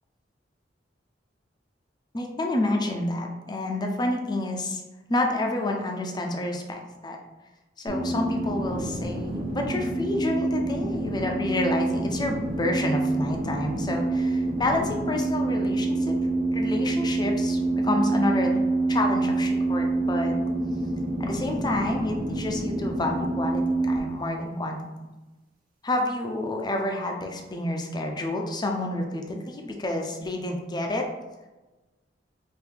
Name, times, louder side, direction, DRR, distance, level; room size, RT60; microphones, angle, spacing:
voice 1, 2.1-4.8 5.1-7.2 7.8-16.1 16.5-20.3 21.2-24.8 25.8-31.0, left 1 dB, 25° left, 2 dB, 0.5 m, -29 dB
sound 1, 7.9-24.0, right 2 dB, 50° right, 1.1 m, -27 dB
4.8 x 2.6 x 3.4 m, 1.1 s
head